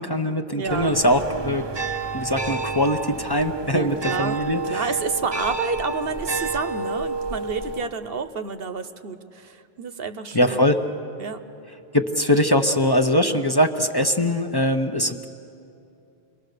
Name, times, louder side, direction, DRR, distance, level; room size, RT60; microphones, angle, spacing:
voice 1, 0.0-1.7 2.1-4.8 10.3-10.8 11.9-15.3, equal, 25° left, 5 dB, 0.8 m, -22 dB
voice 2, 0.6-1.0 3.7-4.4 4.7-10.6 11.2-11.4, right 5 dB, 70° right, 10 dB, 1.1 m, -29 dB
sound 1, 0.7-7.9, right 3 dB, 30° right, 0.7 m, -30 dB
29.0 x 22.5 x 6.7 m, 2.7 s
omnidirectional pair, 1.0 m